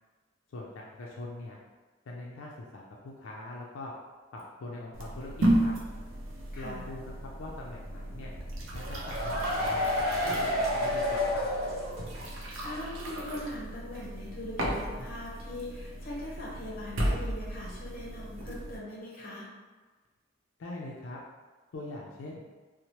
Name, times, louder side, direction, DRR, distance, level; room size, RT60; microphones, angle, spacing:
voice 1, 0.5-1.6 2.1-3.9 4.3-5.7 6.6-8.3 8.7-9.9 10.3-11.5 20.6-21.2 21.7-22.4, left 2 dB, 85° left, -3 dB, 0.4 m, -42 dB
sound 1, 4.9-18.8, right 1 dB, 75° right, 0.5 m, -34 dB
voice 2, 6.5-6.9 12.6-19.5, left 1 dB, 45° left, -5 dB, 0.8 m, -41 dB
sound 2, 8.8-12.4 12.7-12.8 13.1-13.2, left 1 dB, 90° right, 0.9 m, -30 dB
2.8 x 2.0 x 2.9 m, 1.3 s
head